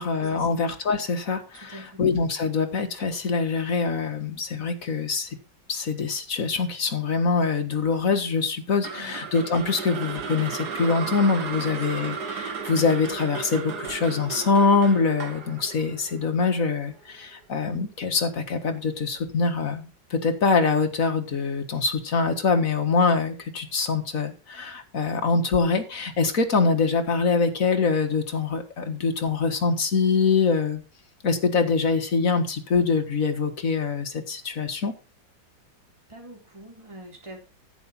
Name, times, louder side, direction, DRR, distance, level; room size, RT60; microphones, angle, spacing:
voice 1, 0.0-5.4 5.7-30.8 31.2-34.9, left 4 dB, 45° left, 6 dB, 1.9 m, -24 dB
voice 2, 1.7-2.0 8.8-9.1 11.7-12.0 36.1-37.4, right 1 dB, 15° right, -1 dB, 3.6 m, -45 dB
sound 1, 8.8-17.0, right 6 dB, 60° right, 1.9 m, -35 dB
11.0 x 8.7 x 4.2 m, 0.32 s
omnidirectional pair, 2.0 m